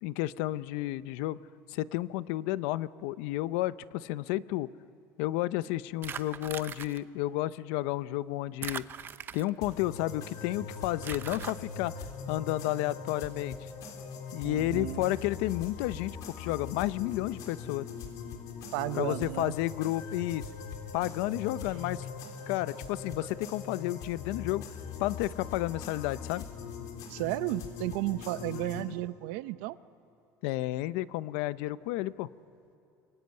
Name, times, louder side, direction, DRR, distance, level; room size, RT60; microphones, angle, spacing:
voice 1, 0.0-1.4 1.7-4.7 5.2-8.8 9.3-11.9 12.3-13.5 14.3-17.8 19.0-20.4 20.9-22.0 22.5-24.6 25.0-26.4 28.8-28.9 30.4-32.3, left 16 dB, 85° left, 16 dB, 0.7 m, -31 dB
sound 1, 6.0-7.0 8.6-9.7 11.0-11.5, right 8 dB, 30° right, 0.7 m, -40 dB
sound 2, 9.6-28.8, left 5 dB, 65° left, 3.5 m, -41 dB
voice 2, 14.4-15.2 18.7-19.5 27.1-29.8, right 17 dB, 90° right, 15 dB, 0.7 m, -33 dB
24.5 x 24.0 x 9.6 m, 2.8 s
cardioid pair, 140°, 7 cm